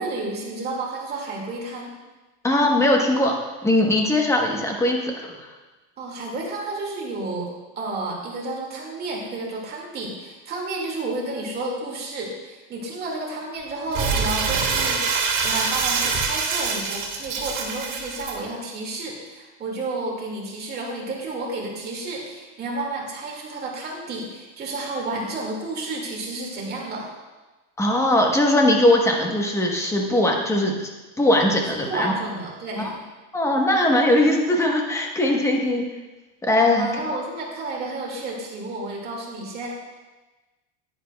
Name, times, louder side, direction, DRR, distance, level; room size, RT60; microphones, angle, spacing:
voice 1, 0.0-1.9 6.0-7.5 7.8-15.0 15.4-27.1 31.7-33.0 36.8-39.8, right 2 dB, 30° right, -2 dB, 2.0 m, -31 dB
voice 2, 2.4-5.3 27.8-30.7 31.2-32.1 32.8-32.9 33.3-35.9 36.4-36.9, left 1 dB, 10° left, 1 dB, 0.9 m, -20 dB
Crumpling crinkling, 13.9-18.3, right 5 dB, 55° right, 1.7 m, -25 dB
10.0 x 10.0 x 2.2 m, 1.2 s
cardioid pair, 150°, 35 cm